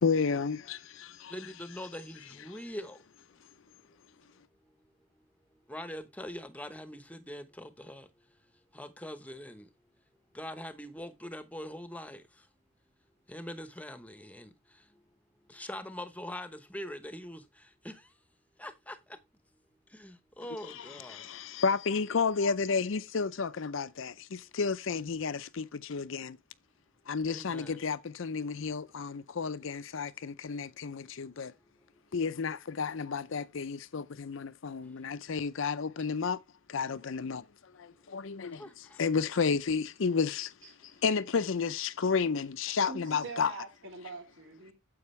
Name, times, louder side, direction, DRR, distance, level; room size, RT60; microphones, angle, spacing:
voice 1, 0.0-1.3 20.7-26.4 27.1-31.5 32.1-36.4 36.7-37.4 37.7-38.6 39.0-40.5 41.0-43.5, left 5 dB, 65° left, 0.5 m, -31 dB
voice 2, 1.3-3.0 5.7-8.0 8.7-9.6 10.3-12.2 13.3-14.5 15.5-17.4 17.8-17.9 18.6-19.0 20.0-21.2 27.3-27.8 38.6-38.7, left 1 dB, 5° left, 0.9 m, -42 dB
voice 3, 40.6-41.0 42.9-44.7, right 3 dB, 65° right, 3.2 m, -44 dB
9.6 x 7.7 x 3.2 m
head